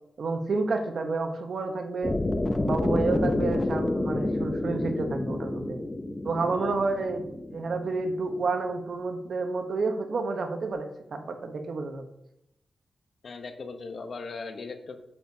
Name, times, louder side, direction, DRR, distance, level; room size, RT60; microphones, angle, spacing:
voice 1, 0.2-2.2 2.6-5.8 6.2-7.2 7.5-12.1, right 3 dB, 65° right, 6 dB, 1.1 m, -30 dB
sound 1, 2.0-8.1, left 2 dB, 25° left, 0.7 m, -29 dB
voice 2, 13.2-15.0, left 4 dB, 65° left, 7 dB, 1.0 m, -38 dB
8.9 x 8.3 x 2.9 m, 0.84 s
cardioid pair, 85°, 0 cm